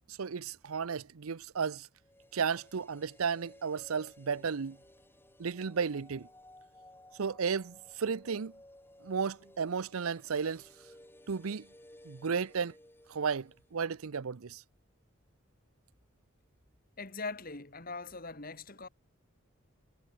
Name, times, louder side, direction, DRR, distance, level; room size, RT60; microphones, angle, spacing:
voice 1, 0.1-1.9 2.3-4.8 5.4-6.3 7.2-8.5 9.0-10.6 11.3-11.7 12.0-12.7 13.1-14.6, right 6 dB, 85° right, 0.6 m, -33 dB
sound 1, 2.0-14.1 14.4-14.5, left 1 dB, 10° left, 6.1 m, -58 dB
voice 2, 17.0-18.9, left 3 dB, 40° left, 2.5 m, -41 dB
head